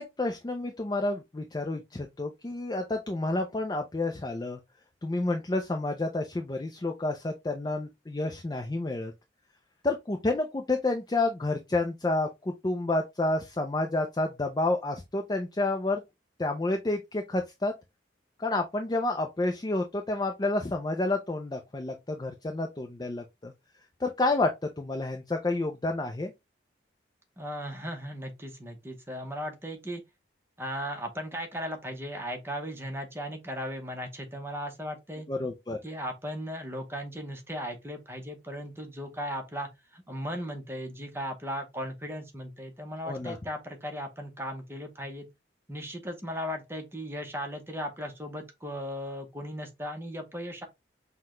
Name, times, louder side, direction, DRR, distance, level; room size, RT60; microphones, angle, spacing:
voice 1, 0.0-4.6 5.0-9.1 9.8-16.0 16.4-17.7 18.4-23.5 24.0-26.3 35.3-35.8 43.1-43.4, left 2 dB, 20° left, 0.4 m, -29 dB
voice 2, 27.4-30.0 30.6-35.3 35.8-45.3 45.7-50.7, equal, 15° right, 0.8 m, -37 dB
5.7 x 2.2 x 3.0 m
head